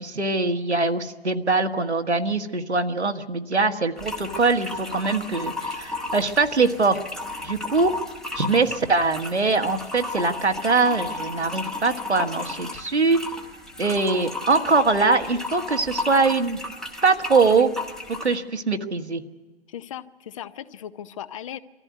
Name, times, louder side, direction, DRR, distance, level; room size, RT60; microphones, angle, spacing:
voice 1, 0.0-7.0 7.4-7.9 8.3-13.2 13.8-16.6 17.0-17.7 18.2-19.2, right 3 dB, 90° right, 6 dB, 1.6 m, -22 dB
sound 1, 4.0-18.4, left 2 dB, ahead, 1.0 m, -34 dB
voice 2, 19.7-21.6, left 10 dB, 30° left, 15 dB, 0.7 m, -37 dB
23.5 x 14.5 x 9.4 m, 1.3 s
figure-of-eight pair, 130°, 33 cm